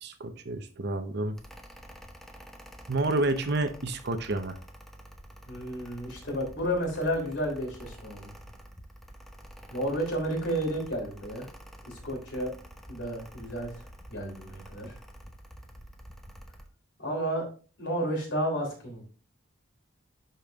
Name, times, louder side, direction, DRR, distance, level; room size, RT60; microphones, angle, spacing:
voice 1, 0.0-1.4 2.9-4.6, right 2 dB, 55° right, 9 dB, 0.7 m, -29 dB
Mechanical fan, 1.4-16.7, equal, ahead, 0.8 m, -48 dB
voice 2, 5.5-8.3 9.7-11.5 11.8-12.5 12.9-13.8 14.1-15.0 17.0-17.4 17.8-19.0, equal, 60° left, 1 dB, 3.2 m, -31 dB
11.0 x 5.1 x 2.4 m, 0.37 s
head